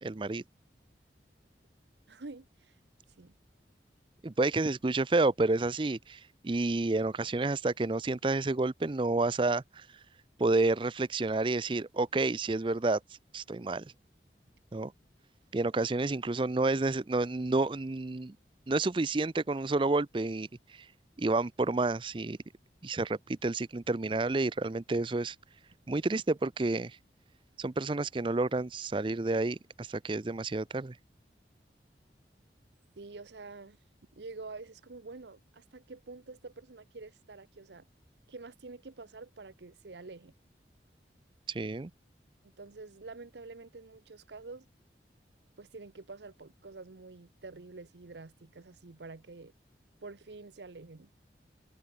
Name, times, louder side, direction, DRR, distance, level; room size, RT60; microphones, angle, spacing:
voice 1, 0.0-0.4 4.2-9.9 10.4-13.0 13.3-13.8 14.7-14.9 15.5-18.4 18.7-20.5 21.2-22.4 22.8-25.4 25.9-27.0 27.6-30.9 41.5-41.9, right 2 dB, 30° right, 0.5 m, -30 dB
voice 2, 2.1-2.7 3.2-3.3 33.0-33.8 34.1-37.9 38.3-40.3 42.4-44.7 45.6-49.5 50.0-51.1, right 3 dB, 80° right, 0.8 m, -47 dB
head